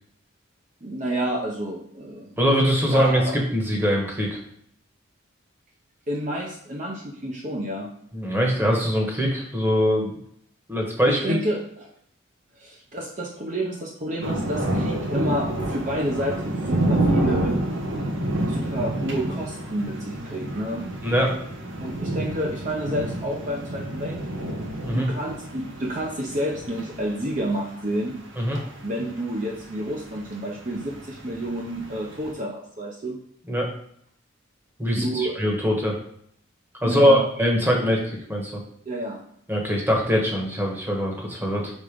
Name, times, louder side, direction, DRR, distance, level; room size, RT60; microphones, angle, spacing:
voice 1, 0.8-2.3 2.8-3.4 6.1-7.9 11.1-11.9 12.6-17.6 18.5-20.9 21.8-24.2 24.8-28.2 28.8-33.2 34.9-35.4 36.8-37.3 38.9-39.2, right 1 dB, 40° right, -1 dB, 0.7 m, -29 dB
voice 2, 2.4-4.4 8.1-10.1 10.7-11.4 21.0-21.4 24.8-25.1 28.4-28.6 33.5-33.7 34.8-35.9 36.8-38.5 39.5-41.7, equal, 10° right, -1 dB, 1.1 m, -22 dB
sound 1, 14.2-32.3, right 1 dB, 75° right, 1.1 m, -29 dB
5.3 x 3.8 x 5.1 m, 0.69 s
head